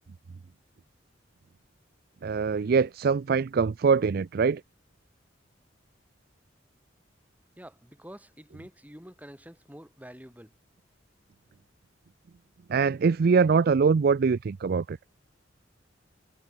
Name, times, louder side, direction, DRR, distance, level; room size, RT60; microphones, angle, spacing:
voice 1, 2.2-4.6 12.7-15.0, right 5 dB, 55° right, 0.4 m, -23 dB
voice 2, 7.6-10.6, equal, 10° right, 7.1 m, -47 dB
head